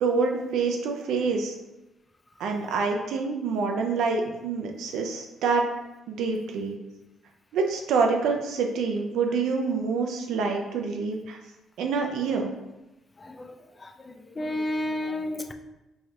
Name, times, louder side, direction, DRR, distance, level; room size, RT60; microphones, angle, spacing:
voice 1, 0.0-1.5 2.4-5.7 6.1-6.8 7.5-11.4 11.8-12.5, right 4 dB, 85° right, 2 dB, 0.4 m, -26 dB
voice 2, 13.2-13.6 13.8-15.5, left 1 dB, 25° left, 6 dB, 0.3 m, -32 dB
3.1 x 2.4 x 4.3 m, 1.0 s
cardioid pair, 90°, 0 cm